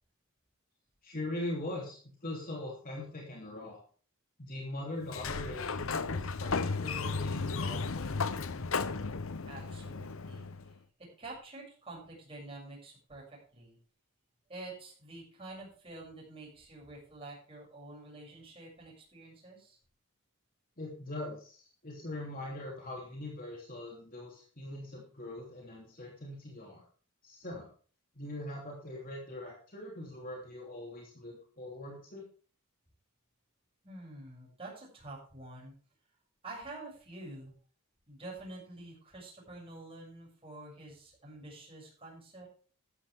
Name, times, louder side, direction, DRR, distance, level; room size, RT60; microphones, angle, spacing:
voice 1, 1.0-3.8 4.4-8.5 20.8-26.8 27.2-27.7 28.1-32.3, left 1 dB, 40° left, -2 dB, 3.2 m, -42 dB
Sliding door, 5.0-10.7, left 4 dB, 65° left, 0.8 m, -34 dB
voice 2, 9.5-13.2 13.5-13.8 14.5-19.8 33.8-35.7 36.4-37.5 38.1-42.4, right 2 dB, 25° right, -4 dB, 7.1 m, -48 dB
13.5 x 12.0 x 3.6 m, 0.41 s
head